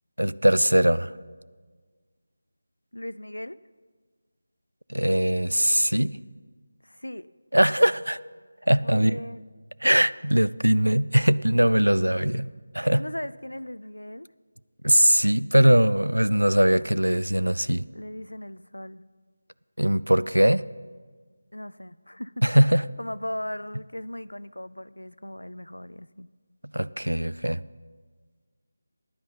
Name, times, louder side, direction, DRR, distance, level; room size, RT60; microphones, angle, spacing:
voice 1, 0.2-1.1 4.9-6.2 7.5-8.2 8.7-9.2 9.8-12.5 12.7-13.0 14.8-17.9 19.8-20.6 22.4-22.9 26.7-27.6, right 1 dB, 90° right, 0.3 m, -21 dB
voice 2, 2.9-3.6 6.8-7.3 8.8-9.5 13.0-14.3 17.9-19.1 21.5-22.4 23.0-26.3, left 1 dB, 85° left, 0.4 m, -37 dB
14.5 x 10.0 x 4.0 m
figure-of-eight pair, 165°, 0 cm